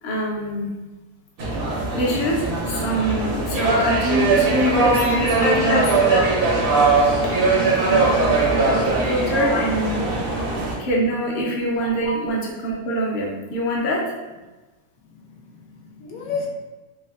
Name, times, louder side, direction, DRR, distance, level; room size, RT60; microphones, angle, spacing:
voice 1, 0.0-0.7 1.9-5.9 7.0-7.1 7.6-10.0 10.8-14.0, right 1 dB, 60° left, -3 dB, 0.5 m, -24 dB
sound 1, 1.4-10.8, right 3 dB, 65° right, 0.5 m, -20 dB
voice 2, 5.0-6.2 9.3-9.6 10.3-10.4 11.5-11.6 12.0-12.2 15.2-16.5, left 4 dB, 75° left, -1 dB, 1.0 m, -28 dB
3.3 x 2.2 x 2.4 m, 1.2 s
omnidirectional pair, 1.6 m